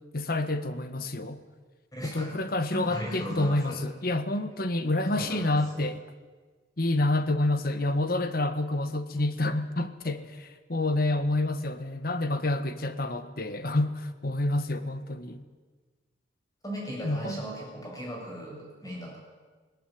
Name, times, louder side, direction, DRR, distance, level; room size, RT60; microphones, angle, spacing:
voice 1, 0.1-1.4 2.0-6.0 6.8-10.2 10.7-15.4 17.0-17.4, left 2 dB, 50° left, 11 dB, 1.4 m, -28 dB
voice 2, 1.9-2.4 2.7-3.8 5.2-5.6 16.6-19.2, equal, 20° left, -2 dB, 7.7 m, -37 dB
19.5 x 19.0 x 9.3 m, 1.4 s
head